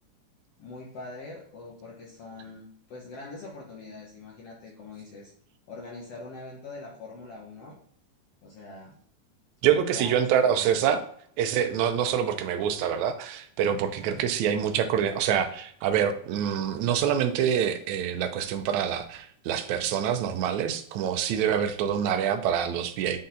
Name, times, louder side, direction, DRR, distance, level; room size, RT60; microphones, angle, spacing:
voice 1, 0.6-5.3 5.7-7.7 8.4-9.0 9.9-10.7 14.0-14.3, left 3 dB, 60° left, -3 dB, 1.9 m, -43 dB
voice 2, 9.6-11.0 11.4-23.2, right 8 dB, 75° right, 7 dB, 1.9 m, -26 dB
8.6 x 4.1 x 3.9 m, 0.63 s
omnidirectional pair, 3.6 m